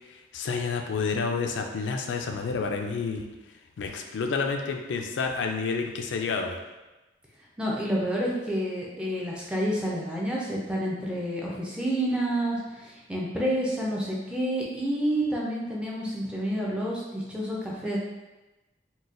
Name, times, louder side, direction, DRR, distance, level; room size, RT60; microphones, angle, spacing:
voice 1, 0.3-3.3 3.8-6.6, left 4 dB, 75° left, 4 dB, 0.3 m, -29 dB
voice 2, 7.6-18.0, equal, 5° right, -4 dB, 0.4 m, -29 dB
3.9 x 2.2 x 2.4 m, 1.1 s
head